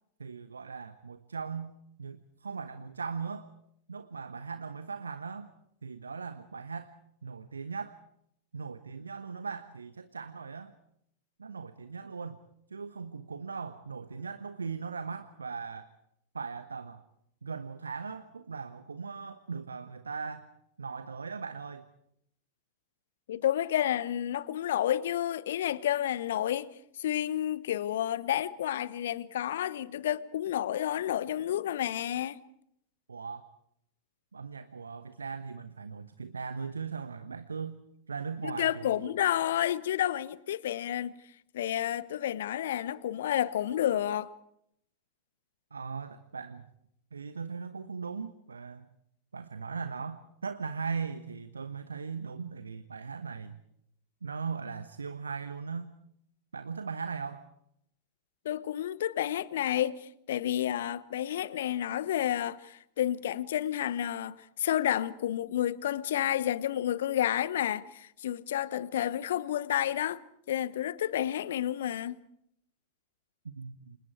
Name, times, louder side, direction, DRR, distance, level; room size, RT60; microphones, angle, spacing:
voice 1, 0.2-1.7 2.0-3.5 3.9-5.5 5.8-6.9 7.2-8.0 8.5-10.7 11.4-12.4 12.7-15.9 16.3-17.0 17.4-20.5 20.8-21.9 33.1-33.5 34.3-37.8 38.1-39.1 45.7-46.7 47.1-48.9 49.3-53.6 54.2-55.9 56.5-57.5 73.4-74.0, right 5 dB, 75° right, 1.1 m, -39 dB
voice 2, 23.3-26.7 27.0-32.4 38.4-41.1 41.5-44.3 58.4-70.2 70.5-72.2, left 11 dB, 60° left, 1.0 m, -30 dB
29.5 x 27.0 x 4.8 m
figure-of-eight pair, 90°, 0 cm